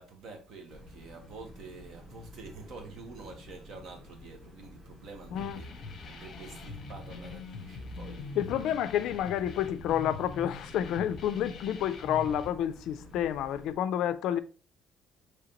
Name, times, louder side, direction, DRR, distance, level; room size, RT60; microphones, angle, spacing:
voice 1, 0.0-5.7 6.1-8.3, right 3 dB, 55° right, 1.1 m, -47 dB
sound 1, 0.7-13.8, left 1 dB, 15° right, 1.0 m, -51 dB
voice 2, 5.3-5.6 8.4-14.4, left 10 dB, 70° left, 0.3 m, -30 dB
sound 2, 5.4-12.5, left 3 dB, 40° left, 0.8 m, -43 dB
5.0 x 3.2 x 2.8 m
cardioid pair, 175°, 0 cm